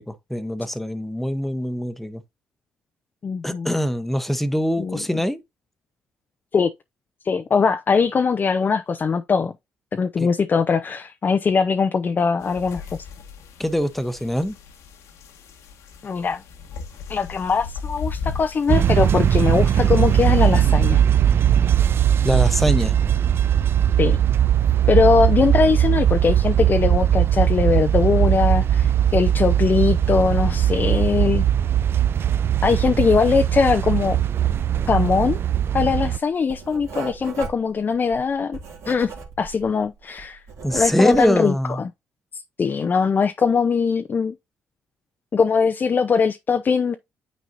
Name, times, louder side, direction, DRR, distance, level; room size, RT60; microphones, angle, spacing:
voice 1, 0.0-2.2 3.4-5.4 10.2-10.3 13.6-14.6 22.2-22.9 40.6-41.8, equal, 5° left, 1.0 m, -23 dB
voice 2, 3.2-3.7 4.8-5.0 6.5-6.7 7.2-9.5 9.9-12.8 16.0-16.4 17.1-21.0 24.0-24.2 24.9-31.5 32.6-34.2 34.9-35.4 35.7-38.6 38.9-40.4 40.7-41.9 42.6-44.3 45.3-47.0, left 5 dB, 40° left, 0.6 m, -21 dB
sound 1, 12.4-20.7, left 5 dB, 80° left, 1.4 m, -37 dB
sound 2, 18.7-36.2, right 10 dB, 50° right, 0.4 m, -19 dB
Writing, 33.0-33.6 33.9-39.7 40.0-41.4, right 5 dB, 65° right, 2.2 m, -37 dB
9.2 x 4.2 x 2.6 m
cardioid pair, 80°, 5 cm